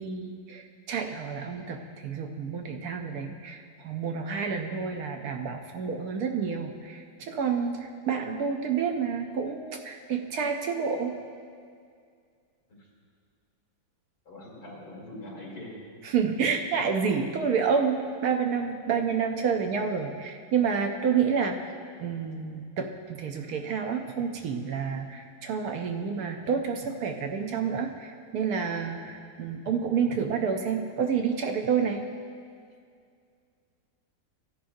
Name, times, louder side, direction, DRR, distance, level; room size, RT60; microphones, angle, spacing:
voice 1, 0.0-11.2 16.0-21.7 22.0-32.1, right 6 dB, 70° right, 4 dB, 1.0 m, -29 dB
voice 2, 14.3-15.8 29.0-29.2, left 1 dB, 55° left, -3 dB, 2.8 m, -43 dB
15.5 x 10.0 x 2.6 m, 2.2 s
omnidirectional pair, 1.9 m